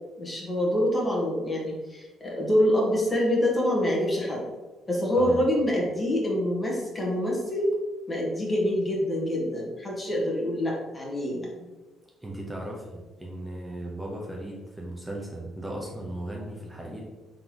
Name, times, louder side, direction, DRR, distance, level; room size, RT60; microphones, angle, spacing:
voice 1, 0.2-4.5 4.9-7.7 8.1-11.5, left 1 dB, 30° left, -3 dB, 1.5 m, -26 dB
voice 2, 5.2-5.5 12.2-17.0, right 1 dB, 15° right, -2 dB, 0.9 m, -37 dB
3.9 x 3.5 x 3.0 m, 1.2 s
hypercardioid pair, 55°, 0 cm